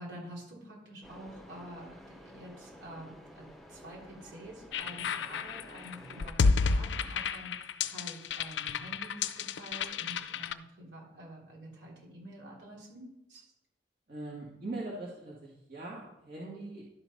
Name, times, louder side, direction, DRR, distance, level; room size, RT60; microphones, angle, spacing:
voice 1, 0.0-13.5, right 1 dB, 75° right, -3 dB, 3.5 m, -48 dB
sound 1, 1.0-6.3, equal, ahead, 0.8 m, -52 dB
sound 2, 4.7-10.5, left 5 dB, 75° left, 0.4 m, -31 dB
voice 2, 14.1-16.8, right 2 dB, 50° right, -5 dB, 1.8 m, -41 dB
11.5 x 4.5 x 5.4 m, 0.86 s
head